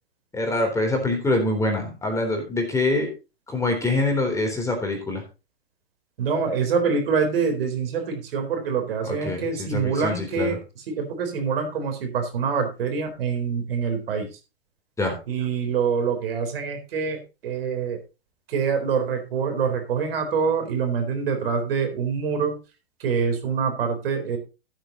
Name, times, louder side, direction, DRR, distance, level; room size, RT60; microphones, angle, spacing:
voice 1, 0.3-3.1 3.5-5.2 9.0-10.6 15.0-15.1, left 2 dB, 10° left, 2 dB, 3.7 m, -25 dB
voice 2, 6.2-14.4 15.3-18.0 18.5-22.5 23.0-24.4, right 5 dB, 65° right, 5 dB, 4.0 m, -25 dB
14.5 x 8.9 x 3.0 m, 0.30 s
hypercardioid pair, 115°, 31 cm